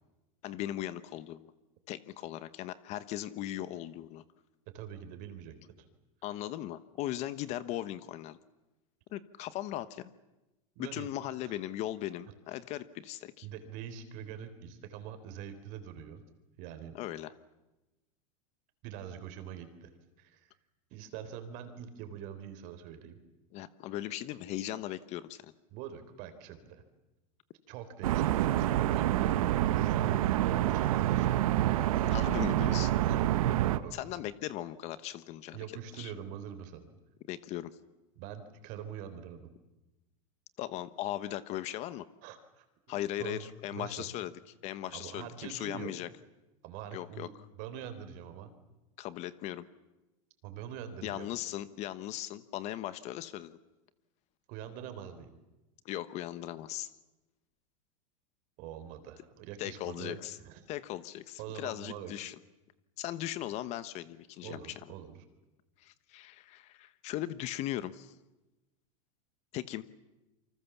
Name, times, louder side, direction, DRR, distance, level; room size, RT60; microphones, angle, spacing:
voice 1, 0.4-1.5 1.9-4.2 6.2-8.4 9.1-10.1 10.8-13.5 16.9-17.3 23.5-25.5 32.1-32.9 33.9-35.6 36.0-36.1 37.3-37.7 40.6-42.0 42.9-44.3 44.6-46.1 46.9-47.3 49.0-49.6 51.0-53.6 55.8-56.9 59.6-60.4 60.7-62.4 63.0-64.7 65.8-68.1 69.5-69.8, left 13 dB, 40° left, 15 dB, 1.0 m, -38 dB
voice 2, 4.7-5.9 10.8-11.1 11.5-11.6 13.4-16.2 16.6-17.0 18.8-19.9 20.2-20.5 20.9-23.2 25.7-26.8 27.7-29.3 29.6-31.6 33.1-33.2 33.7-34.0 35.5-36.9 38.2-39.5 42.2-44.1 44.9-45.9 46.6-48.5 50.4-51.3 54.5-55.4 58.6-60.6 61.4-62.1 64.4-65.1, right 9 dB, 50° right, 9 dB, 3.8 m, -44 dB
sound 1, 28.0-33.8, right 13 dB, 75° right, 1.3 m, -27 dB
27.5 x 25.0 x 7.2 m, 1.0 s
supercardioid pair, 145°, 18 cm